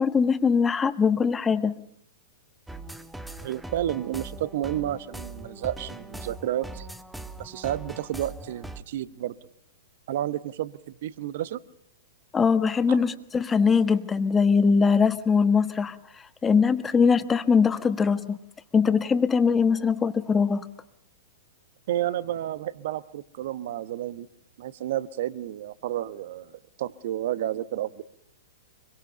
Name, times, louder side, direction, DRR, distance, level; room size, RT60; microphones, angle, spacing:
voice 1, 0.0-1.7 12.3-16.0 16.4-18.4 18.7-20.6, left 5 dB, 15° left, 1.4 m, -21 dB
sound 1, 2.7-8.8, right 2 dB, 5° right, 1.3 m, -40 dB
voice 2, 3.4-6.9 7.4-9.4 10.1-11.6 12.9-13.0 21.9-24.3 24.6-28.0, right 12 dB, 55° right, 1.1 m, -31 dB
24.5 x 23.0 x 6.8 m
hypercardioid pair, 110°, 0 cm